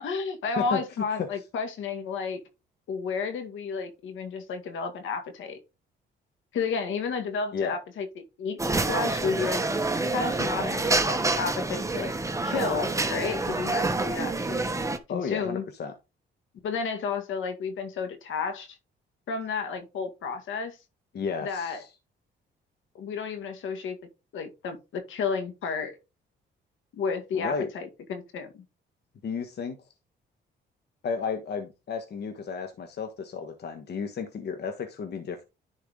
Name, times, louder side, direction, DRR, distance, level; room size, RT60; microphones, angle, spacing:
voice 1, 0.0-2.4 2.9-5.6 6.5-8.6 8.9-9.6 10.1-12.1 12.4-14.6 15.1-15.6 16.6-18.8 19.3-20.8 21.4-21.8 22.9-24.0 24.3-26.0 26.9-28.6, left 5 dB, 80° left, 2.0 m, -32 dB
sound 1, 8.6-15.0, right 2 dB, 15° right, 1.1 m, -27 dB
voice 2, 15.1-15.9 21.1-21.9 27.3-27.7 29.2-29.8 31.0-35.4, left 5 dB, 55° left, 1.3 m, -32 dB
10.5 x 4.5 x 3.7 m
cardioid pair, 90°, 20 cm